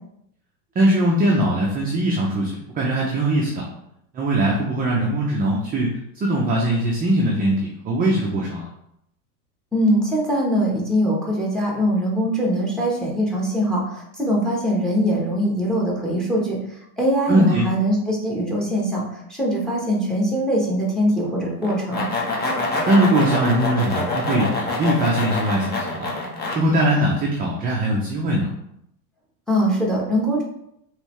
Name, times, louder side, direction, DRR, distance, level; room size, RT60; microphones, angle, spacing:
voice 1, 0.7-3.6 4.1-8.7 17.3-17.7 22.9-26.1 26.5-28.5, right 1 dB, 20° right, -3 dB, 0.6 m, -21 dB
voice 2, 9.7-22.1 29.5-30.4, equal, ahead, -3 dB, 1.3 m, -22 dB
sound 1, 21.6-26.6, left 2 dB, 20° left, 1.1 m, -25 dB
5.2 x 3.2 x 3.2 m, 0.77 s
supercardioid pair, 135°, 48 cm